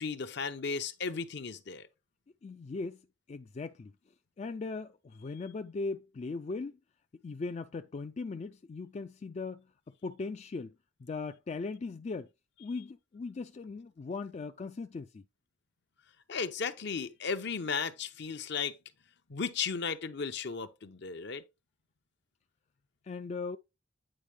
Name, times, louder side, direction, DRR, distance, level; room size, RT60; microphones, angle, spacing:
voice 1, 0.0-1.9 16.3-18.8 19.3-21.4, left 5 dB, 60° left, 0.7 m, -35 dB
voice 2, 2.4-3.0 3.3-3.9 4.4-6.8 7.2-9.7 10.0-10.7 11.0-12.3 12.6-15.2 23.0-23.6, left 3 dB, 35° left, 0.3 m, -39 dB
8.8 x 4.5 x 3.3 m
head